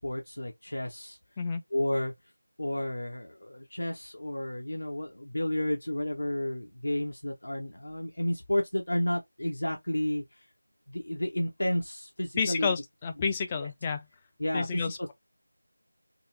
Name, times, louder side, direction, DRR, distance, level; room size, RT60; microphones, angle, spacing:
voice 1, 0.0-1.2 1.7-2.1 2.6-10.2 10.9-12.7 13.6-13.7 14.4-15.1, left 1 dB, 65° left, 1.1 m, -31 dB
voice 2, 12.4-14.1 14.5-15.1, left 5 dB, 15° left, 0.3 m, -30 dB
3.0 x 3.0 x 3.2 m
figure-of-eight pair, 170°, 0 cm